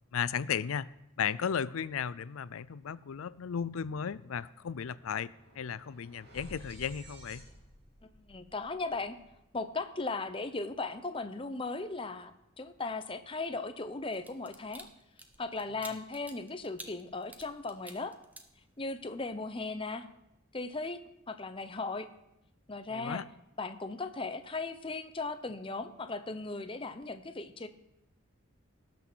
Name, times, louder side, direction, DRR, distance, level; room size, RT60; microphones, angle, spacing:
voice 1, 0.1-0.9 1.2-5.3 5.6-7.4 22.9-23.2, left 7 dB, 80° left, 19 dB, 0.4 m, -35 dB
sound 1, 3.2-3.3 3.6-9.9, right 1 dB, 50° right, 3.0 m, -55 dB
voice 2, 8.1-9.2 9.5-14.9 15.4-18.2 18.8-20.1 20.5-21.0 21.3-22.1 22.7-23.2 23.6-27.7, left 3 dB, 25° left, 10 dB, 0.7 m, -37 dB
sound 2, 14.1-19.1 19.5-19.7, right 2 dB, 10° right, 0.8 m, -50 dB
18.0 x 6.3 x 6.2 m, 0.86 s
head